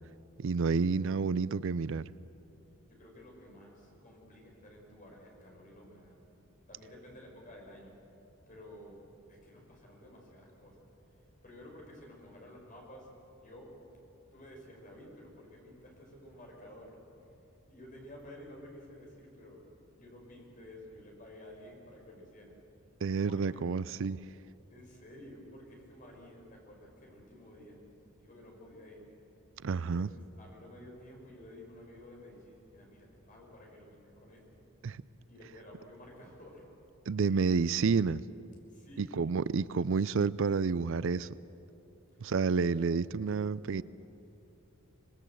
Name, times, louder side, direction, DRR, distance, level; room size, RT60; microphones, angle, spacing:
voice 1, 0.4-2.1 23.0-24.2 29.6-30.1 34.8-35.0 37.1-38.2 39.0-41.3 42.2-43.8, right 5 dB, 65° right, 0.4 m, -29 dB
voice 2, 2.9-6.2 6.7-8.0 8.5-10.9 11.1-13.7 14.3-16.9 17.7-19.6 19.9-22.5 23.2-23.7 24.7-27.8 28.2-29.1 29.9-34.6 35.3-36.7 37.2-37.4 38.7-39.3 42.1-42.7, left 1 dB, 40° left, 6.0 m, -52 dB
26.5 x 20.5 x 7.7 m
head